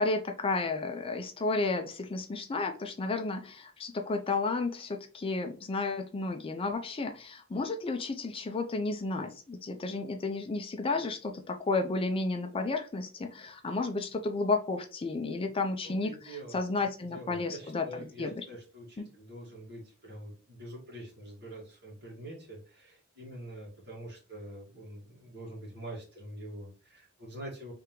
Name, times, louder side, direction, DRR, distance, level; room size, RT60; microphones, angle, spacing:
voice 1, 0.0-18.4 19.0-19.1, left 3 dB, 25° left, 5 dB, 0.4 m, -32 dB
voice 2, 15.8-16.6 17.1-27.7, right 1 dB, 55° right, -3 dB, 1.9 m, -45 dB
3.6 x 3.3 x 3.0 m, 0.37 s
head